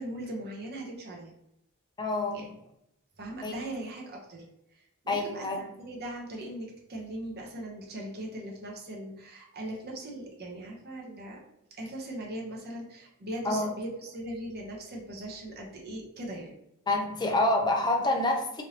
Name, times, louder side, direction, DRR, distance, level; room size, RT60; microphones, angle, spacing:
voice 1, 0.0-1.3 2.3-2.5 3.2-4.4 4.8-11.4 11.8-16.5, right 1 dB, 45° right, -2 dB, 0.8 m, -39 dB
voice 2, 2.0-2.5 3.4-3.6 5.1-5.7 13.4-13.7 16.9-18.6, left 2 dB, 20° left, 2 dB, 0.5 m, -27 dB
3.2 x 2.6 x 2.8 m, 0.81 s
head